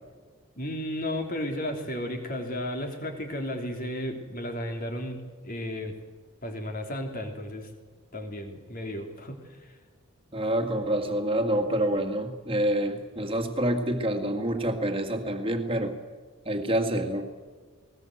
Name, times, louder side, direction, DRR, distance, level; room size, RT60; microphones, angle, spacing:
voice 1, 0.6-5.9 6.4-7.7 8.1-9.7, left 1 dB, 40° left, 4 dB, 3.2 m, -34 dB
voice 2, 10.3-16.0 16.5-17.3, right 1 dB, 25° right, 5 dB, 2.1 m, -27 dB
19.5 x 19.5 x 7.9 m, 1.5 s
head